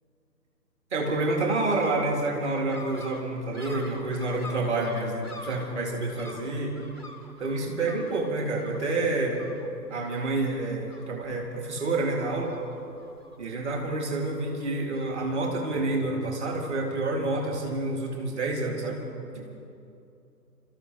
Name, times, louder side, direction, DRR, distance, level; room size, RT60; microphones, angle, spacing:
voice 1, 0.9-6.8 7.4-9.4 9.9-12.6 13.4-19.0 19.3-19.6, right 2 dB, 45° right, 1 dB, 2.6 m, -28 dB
sound 1, 2.4-15.5, left 2 dB, 15° right, 0.6 m, -47 dB
28.5 x 13.5 x 3.2 m, 2.6 s
figure-of-eight pair, 135°, 50 cm